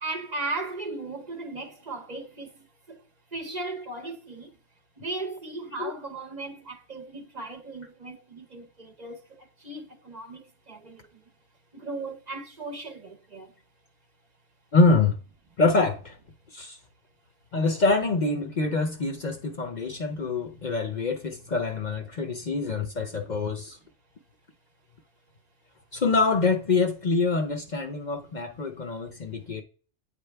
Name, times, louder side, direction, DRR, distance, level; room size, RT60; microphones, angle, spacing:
voice 1, 0.0-2.5 2.9-3.0 3.3-4.5 5.0-9.2 9.6-11.0 11.7-13.5, right 2 dB, 40° right, 0.8 m, -36 dB
voice 2, 14.7-15.2 15.6-16.2 16.5-16.8 17.5-23.8 25.9-29.6, left 3 dB, 45° left, 0.7 m, -25 dB
8.3 x 4.0 x 3.4 m
omnidirectional pair, 1.2 m